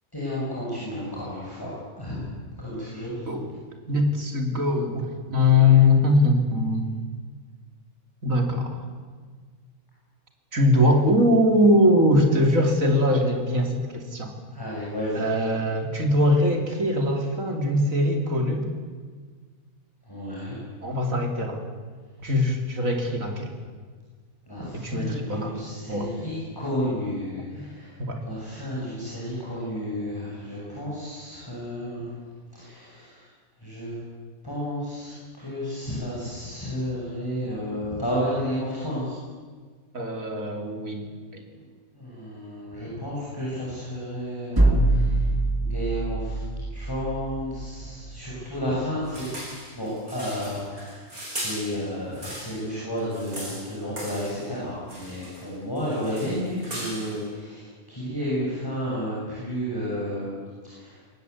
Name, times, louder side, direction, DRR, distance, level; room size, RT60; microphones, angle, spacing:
voice 1, 0.1-1.7 2.0-3.3 5.6-5.7 14.5-15.3 20.0-20.6 24.5-28.0 28.2-32.1 32.5-33.3 33.6-34.0 34.4-39.2 41.9-45.3 45.6-46.4 46.7-49.2 49.7-60.4 60.6-61.0, equal, 15° left, -7 dB, 6.8 m, -32 dB
voice 2, 3.9-6.9 8.2-8.8 10.5-14.3 15.1-18.7 20.8-21.6 22.2-23.5 24.8-25.6 25.9-26.1 28.0-28.2 39.9-41.0 41.3-41.4, left 1 dB, 65° right, 3 dB, 3.4 m, -21 dB
sound 1, 44.6-48.4, right 2 dB, 15° right, 1.7 m, -24 dB
sound 2, 49.1-52.7 53.0-54.5 54.9-55.5 55.8-57.3, right 1 dB, 85° right, 7.0 m, -38 dB
22.5 x 18.5 x 8.3 m, 1.5 s
omnidirectional pair, 1.5 m